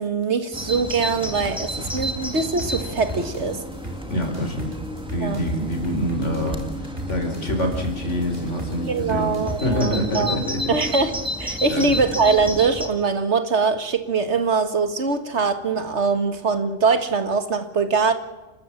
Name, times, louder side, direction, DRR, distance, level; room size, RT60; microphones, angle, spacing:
voice 1, 0.0-3.6 5.2-5.4 8.9-10.4 10.7-18.1, right 4 dB, 75° right, 9 dB, 2.0 m, -22 dB
Bird vocalization bird call bird song, 0.5-12.9, equal, 5° right, 2.1 m, -32 dB
sound 1, 1.8-9.8, right 3 dB, 35° right, 4.2 m, -33 dB
voice 2, 4.1-4.7 5.1-9.4 9.6-10.7 11.7-12.0, equal, 90° left, 5 dB, 4.6 m, -26 dB
29.0 x 13.5 x 7.4 m, 1.1 s
omnidirectional pair, 1.2 m